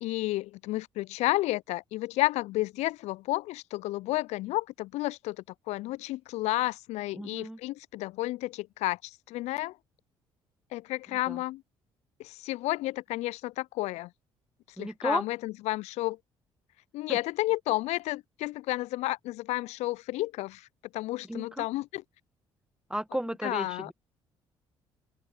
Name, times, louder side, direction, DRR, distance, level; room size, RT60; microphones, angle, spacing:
voice 1, 0.0-5.4 5.7-9.8 10.7-11.6 12.2-14.1 14.8-16.2 16.9-20.7 20.9-22.0 23.4-23.9, left 18 dB, 60° left, 0.4 m, -31 dB
voice 2, 7.1-7.6 11.3-11.4 14.8-15.2 17.1-17.2 21.3-21.7 22.9-23.9, right 1 dB, 5° right, 1.8 m, -33 dB
open air
hypercardioid pair, 50°, 13 cm